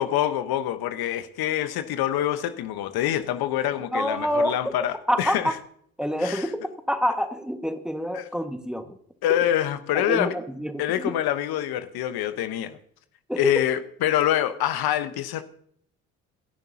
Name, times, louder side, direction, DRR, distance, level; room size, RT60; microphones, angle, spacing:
voice 1, 0.0-5.6 6.2-6.5 8.1-8.3 9.2-10.3 10.8-12.8 13.4-15.4, left 12 dB, 55° left, 11 dB, 1.1 m, -26 dB
voice 2, 3.9-4.6 5.1-5.5 6.0-9.0 9.9-11.1 13.3-13.6, equal, ahead, 7 dB, 1.6 m, -27 dB
28.0 x 11.0 x 2.8 m, 0.64 s
hypercardioid pair, 50°, 43 cm